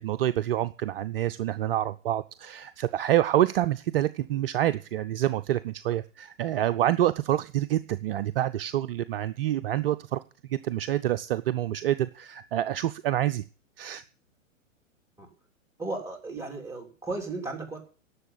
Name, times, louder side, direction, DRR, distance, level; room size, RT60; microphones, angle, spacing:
voice 1, 0.0-13.4 13.8-14.0, right 12 dB, 45° right, 12 dB, 0.6 m, -27 dB
voice 2, 15.8-17.8, right 3 dB, 5° right, 1 dB, 3.4 m, -35 dB
11.5 x 7.1 x 9.7 m, 0.37 s
figure-of-eight pair, 115°, 39 cm